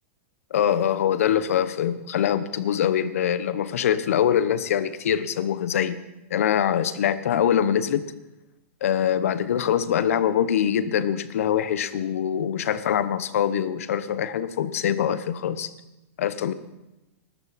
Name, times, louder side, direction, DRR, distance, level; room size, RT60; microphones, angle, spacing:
voice 1, 0.5-6.0 6.3-8.1 8.8-15.7 16.2-16.5, left 9 dB, 70° left, 14 dB, 0.9 m, -23 dB
20.0 x 13.0 x 4.2 m, 0.97 s
supercardioid pair, 180°, 8 cm